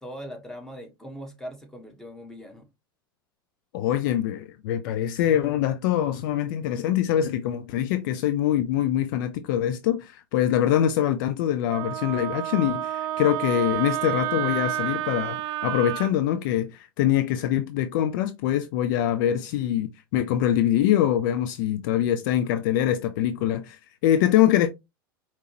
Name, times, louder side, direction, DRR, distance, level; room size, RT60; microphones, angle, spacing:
voice 1, 0.0-2.7, equal, 5° left, 1.4 m, -40 dB
voice 2, 3.7-24.7, left 11 dB, 60° left, 0.5 m, -24 dB
Wind instrument woodwind instrument, 11.7-16.1, right 14 dB, 50° right, 0.4 m, -30 dB
4.8 x 2.9 x 2.9 m
hypercardioid pair, 90°, 12 cm